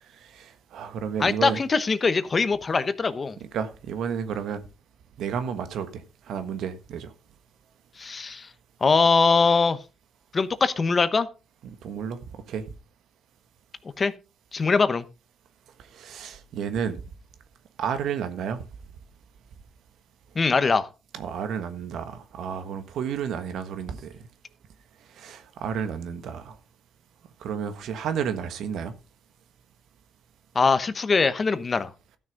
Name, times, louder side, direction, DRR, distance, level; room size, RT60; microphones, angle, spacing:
voice 1, 0.1-1.6 3.5-4.6 5.2-7.1 11.6-12.2 12.5-12.6 15.9-17.0 17.8-18.6 21.1-24.1 25.1-26.6 27.4-28.9, right 7 dB, 75° right, 1.4 m, -31 dB
voice 2, 1.2-3.4 8.0-8.5 8.8-9.8 10.3-11.3 14.0-14.1 14.5-15.0 20.3-20.9 30.5-31.9, left 4 dB, 35° left, 1.1 m, -22 dB
13.0 x 6.3 x 5.2 m
cardioid pair, 90°, 0 cm